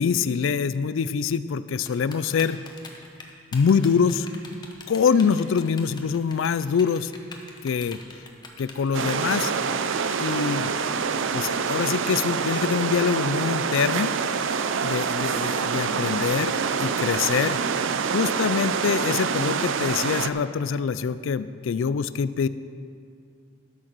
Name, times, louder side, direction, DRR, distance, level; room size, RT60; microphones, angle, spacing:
voice 1, 0.0-2.6 3.5-4.3 4.9-7.1 7.6-8.0 8.6-9.5 10.2-10.7 11.3-14.1 14.8-17.6 18.1-22.5, left 6 dB, 80° left, 15 dB, 0.4 m, -24 dB
Typing, 1.9-12.2, left 3 dB, 20° left, 0.9 m, -44 dB
sound 1, 8.9-20.3, right 6 dB, 75° right, 0.5 m, -26 dB
12.5 x 6.5 x 6.1 m, 2.3 s
head